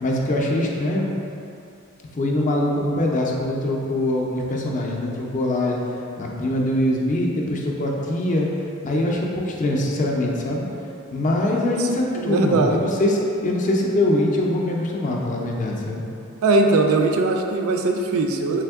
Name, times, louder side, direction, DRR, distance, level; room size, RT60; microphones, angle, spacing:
voice 1, 0.0-1.1 2.1-5.8 6.2-8.5 8.8-10.7 11.1-16.0, left 1 dB, 35° left, -1 dB, 0.4 m, -23 dB
voice 2, 12.1-12.8 16.4-18.6, right 3 dB, 65° right, 3 dB, 0.4 m, -20 dB
3.5 x 3.4 x 3.4 m, 2.7 s
head